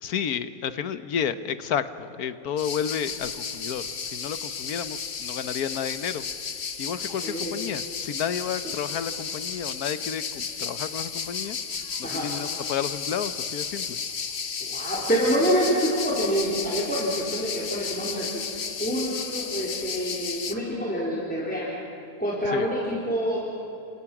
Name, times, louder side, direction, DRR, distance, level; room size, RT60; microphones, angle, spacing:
voice 1, 0.0-6.2 6.8-11.6 12.0-14.0 22.5-22.7, left 8 dB, 75° left, 12 dB, 1.5 m, -31 dB
sound 1, 2.6-20.5, left 6 dB, 45° left, 1.2 m, -33 dB
voice 2, 7.1-7.6 8.6-8.7 12.0-12.3 14.6-18.4 18.8-21.7 22.2-23.4, equal, 5° left, -6 dB, 3.9 m, -27 dB
29.5 x 27.0 x 6.1 m, 2.8 s
omnidirectional pair, 1.6 m